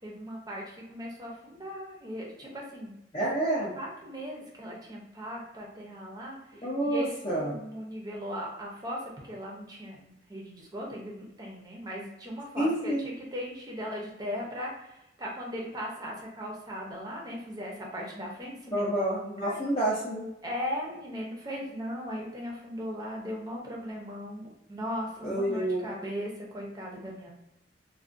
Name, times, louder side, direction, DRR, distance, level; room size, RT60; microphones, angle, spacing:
voice 1, 0.0-2.9 3.7-18.9 19.4-19.6 20.4-27.3, equal, 20° right, -2 dB, 0.5 m, -38 dB
voice 2, 3.1-3.7 6.6-7.6 12.6-13.1 18.7-20.3 25.2-25.9, right 1 dB, 30° left, -8 dB, 0.5 m, -28 dB
2.3 x 2.1 x 2.5 m, 0.89 s
head